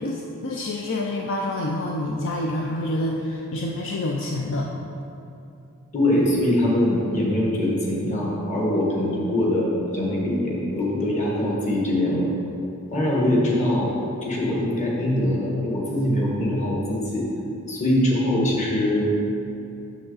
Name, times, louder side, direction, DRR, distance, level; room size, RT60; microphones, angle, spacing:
voice 1, 0.0-4.7, left 1 dB, 60° left, -1 dB, 0.5 m, -27 dB
voice 2, 5.9-12.3 12.9-13.9 14.2-17.3 17.7-19.1, left 1 dB, 35° left, -3 dB, 1.4 m, -23 dB
6.9 x 6.3 x 4.0 m, 2.6 s
head